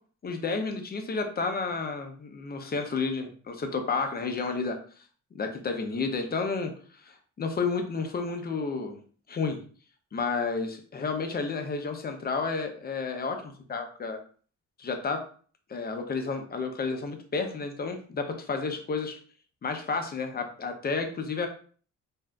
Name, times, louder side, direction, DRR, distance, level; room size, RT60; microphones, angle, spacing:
voice 1, 0.2-4.8 5.3-6.7 7.1-9.0 9.3-9.6 10.1-14.2 14.8-15.2 15.7-19.2 19.6-21.5, left 4 dB, 30° left, 5 dB, 0.6 m, -31 dB
3.3 x 2.6 x 2.3 m, 0.43 s
cardioid pair, 90°, 30 cm